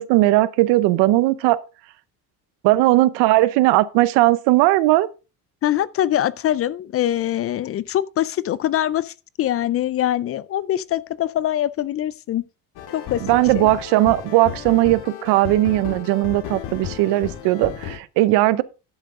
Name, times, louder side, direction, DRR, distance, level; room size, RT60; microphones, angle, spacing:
voice 1, 0.0-1.6 2.6-5.1 13.3-18.6, right 17 dB, 90° right, 0.7 m, -18 dB
voice 2, 5.6-12.4 12.9-13.2 13.5-13.7, left 12 dB, 35° left, 0.4 m, -23 dB
sound 1, 12.8-18.0, left 9 dB, 75° left, 2.1 m, -34 dB
11.5 x 7.3 x 3.6 m
cardioid pair, 145°, 40 cm